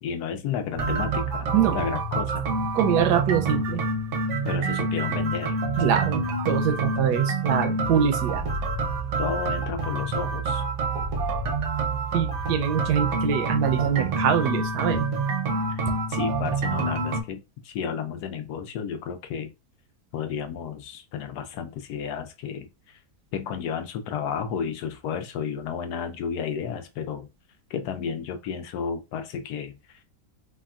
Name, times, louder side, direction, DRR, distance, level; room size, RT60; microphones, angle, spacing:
voice 1, 0.0-2.4 4.5-5.6 9.2-10.6 15.7-15.8 16.1-19.5 20.1-23.0 23.3-27.3 27.7-29.7, left 7 dB, 75° left, 1.1 m, -32 dB
sound 1, 0.7-17.2, right 3 dB, 60° right, 0.8 m, -27 dB
voice 2, 1.5-1.8 2.7-3.8 5.8-8.5 12.1-15.0, right 8 dB, 80° right, 1.1 m, -24 dB
3.4 x 2.3 x 2.3 m
omnidirectional pair, 1.8 m